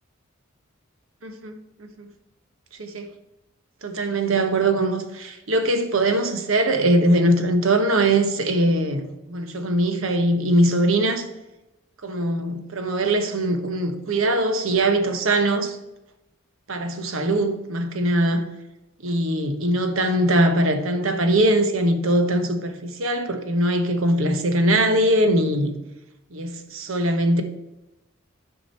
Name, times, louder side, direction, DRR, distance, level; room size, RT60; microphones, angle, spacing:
voice 1, 1.2-2.1 2.8-3.1 3.8-11.3 12.0-15.8 16.7-18.5 19.0-25.8 26.3-27.4, right 1 dB, 80° right, 1.1 m, -21 dB
12.5 x 5.0 x 4.3 m
head